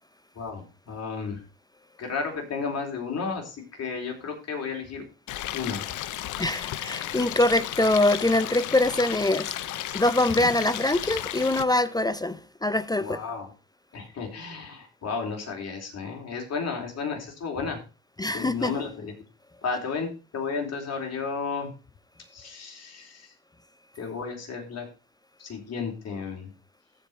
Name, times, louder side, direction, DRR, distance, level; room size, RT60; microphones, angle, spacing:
voice 1, 0.4-1.4 2.0-5.0 5.5-5.8 13.0-13.5 13.9-17.8 18.3-19.1 19.6-21.7 22.3-23.3 24.0-24.9 25.4-26.5, left 5 dB, 55° left, 3.8 m, -33 dB
Stream, 5.3-11.6, left 13 dB, 75° left, 0.7 m, -34 dB
voice 2, 6.4-9.5 9.9-13.2 18.2-18.7, left 2 dB, 15° left, 0.5 m, -24 dB
15.0 x 5.2 x 4.3 m
cardioid pair, 90°, 30 cm